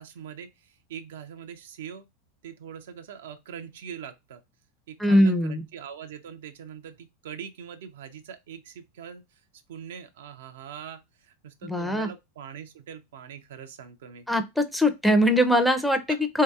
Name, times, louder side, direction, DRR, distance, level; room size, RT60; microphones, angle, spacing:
voice 1, 0.0-2.1 2.4-4.4 4.9-9.3 9.7-14.3, right 8 dB, 75° right, 0.4 m, -42 dB
voice 2, 5.0-5.6 11.6-12.1 14.3-16.4, equal, ahead, 0.5 m, -22 dB
3.1 x 2.8 x 2.3 m
hypercardioid pair, 100°, 0 cm